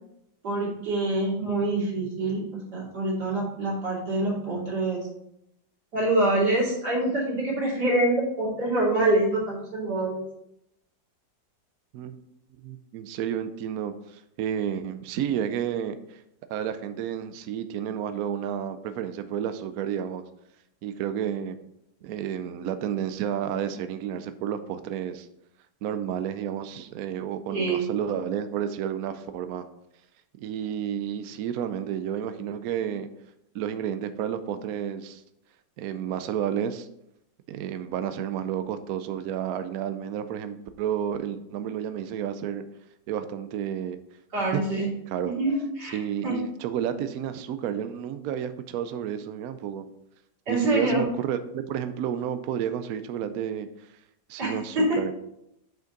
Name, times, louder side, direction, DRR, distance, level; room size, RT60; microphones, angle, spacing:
voice 1, 0.4-5.0 5.9-10.2 27.5-27.8 44.3-44.9 45.2-46.4 50.5-51.0 54.4-55.0, right 2 dB, 60° right, -5 dB, 3.3 m, -25 dB
voice 2, 12.6-16.2 16.5-20.2 20.8-21.6 22.0-25.3 25.8-29.6 30.4-33.1 33.5-35.2 35.8-36.9 37.5-42.6 43.1-44.0 44.5-44.6 45.1-45.3 45.9-49.9 50.5-53.7 54.3-55.1, right 9 dB, 75° right, 10 dB, 0.8 m, -31 dB
7.6 x 5.2 x 3.8 m, 0.79 s
omnidirectional pair, 2.1 m